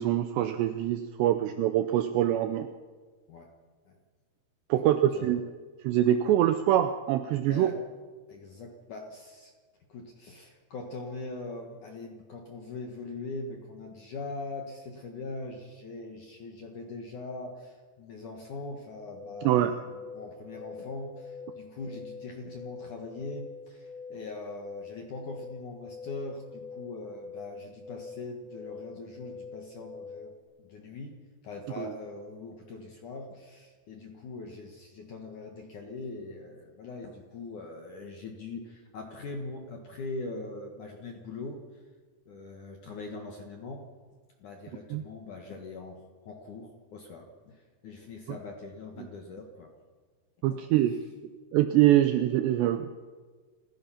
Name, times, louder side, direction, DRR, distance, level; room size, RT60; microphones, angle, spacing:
voice 1, 0.0-2.7 4.7-5.4 5.8-7.7 19.4-19.7 31.8-31.9 44.9-45.0 50.4-50.9 51.5-53.0, right 12 dB, 80° right, 9 dB, 2.5 m, -24 dB
voice 2, 7.5-7.8 8.3-9.5 9.9-41.9 42.3-43.9 44.4-49.7 50.5-50.6, left 3 dB, 60° left, 2 dB, 2.1 m, -42 dB
sound 1, 19.0-30.4, left 4 dB, 60° right, 3.3 m, -45 dB
29.0 x 15.5 x 5.8 m, 1.5 s
omnidirectional pair, 5.7 m